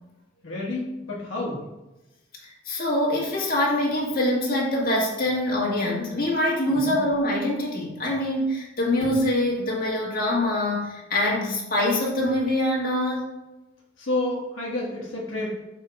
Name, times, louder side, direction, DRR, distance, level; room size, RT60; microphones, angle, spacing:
voice 1, 0.4-1.6 6.7-7.0 14.0-15.5, left 2 dB, 80° left, -4 dB, 1.4 m, -29 dB
voice 2, 2.4-13.2, left 1 dB, 50° left, -3 dB, 1.7 m, -24 dB
5.6 x 3.7 x 4.7 m, 1.0 s
head